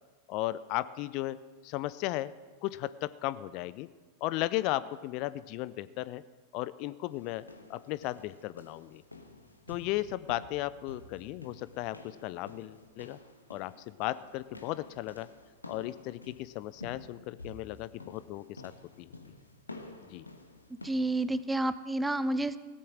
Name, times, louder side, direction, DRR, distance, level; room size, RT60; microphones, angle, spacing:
voice 1, 0.3-1.4 1.6-2.3 2.6-3.9 4.2-6.2 6.5-7.4 7.7-9.0 9.7-13.2 13.5-13.7 14.0-15.3 15.7-18.7 19.0-19.1 20.1-20.2, left 16 dB, 45° left, 16 dB, 0.4 m, -35 dB
sound 1, 7.1-21.4, left 2 dB, 80° left, 1.2 m, -51 dB
voice 2, 20.8-22.6, right 2 dB, 5° right, 15 dB, 0.5 m, -29 dB
16.5 x 8.5 x 6.3 m, 1.4 s
figure-of-eight pair, 90°, 0 cm